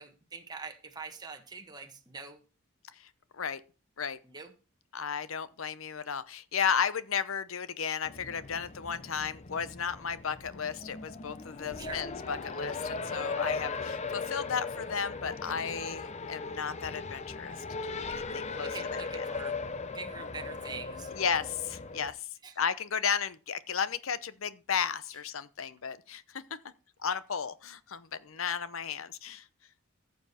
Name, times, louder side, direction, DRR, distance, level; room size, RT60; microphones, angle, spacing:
voice 1, 0.0-2.4 4.2-4.5 11.8-12.0 18.5-19.6 19.9-21.1 22.4-22.5, right 4 dB, 20° right, 1.3 m, -44 dB
voice 2, 3.0-3.6 4.0-4.2 4.9-19.2 21.1-22.2 22.6-26.6 27.0-29.4, left 7 dB, 70° left, 0.8 m, -34 dB
Race car auto racing, 8.1-22.1, left 4 dB, 35° left, 0.8 m, -38 dB
14.5 x 6.9 x 4.3 m
head